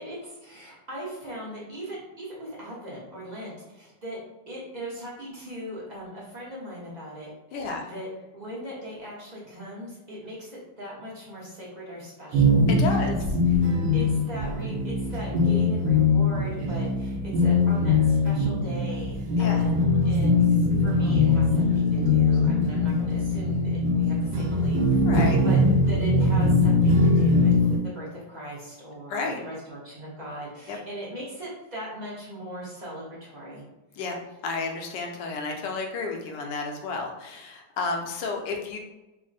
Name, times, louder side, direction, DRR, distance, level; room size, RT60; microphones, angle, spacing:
voice 1, 0.0-4.2 4.5-8.1 8.3-13.2 13.5-13.6 13.9-25.6 25.9-27.5 27.8-33.6, equal, 40° right, -6 dB, 0.7 m, -39 dB
voice 2, 7.5-7.9 12.8-13.1 19.4-19.6 25.0-25.4 29.1-29.4 30.7-30.8 34.0-34.1 34.4-38.8, left 4 dB, 75° left, 2 dB, 1.2 m, -31 dB
sound 1, 12.3-27.8, left 2 dB, 85° right, 1.4 m, -22 dB
3.5 x 2.0 x 3.9 m, 1.0 s
omnidirectional pair, 2.0 m